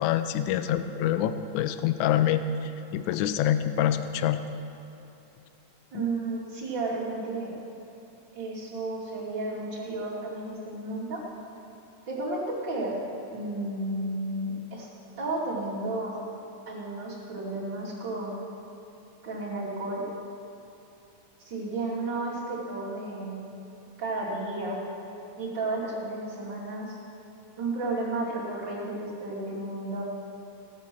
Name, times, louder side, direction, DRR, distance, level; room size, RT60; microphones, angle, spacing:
voice 1, 0.0-4.4 5.9-6.0, left 10 dB, 80° left, 11 dB, 1.9 m, -26 dB
voice 2, 5.9-7.5 8.3-11.2 12.1-13.0 13.3-14.9 15.2-16.2 16.7-18.3 19.2-20.1 21.4-23.4 24.0-24.8 25.4-27.0 27.6-30.0, right 2 dB, 35° right, -7 dB, 3.1 m, -32 dB
17.0 x 7.4 x 6.1 m, 2.9 s
omnidirectional pair, 3.7 m